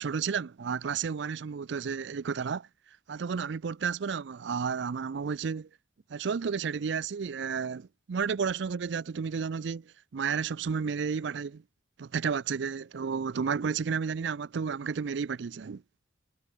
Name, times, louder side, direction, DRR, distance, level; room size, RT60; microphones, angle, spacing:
voice 1, 0.0-2.7 3.1-5.7 6.1-11.6 12.0-15.8, right 6 dB, 65° right, 0.4 m, -32 dB
head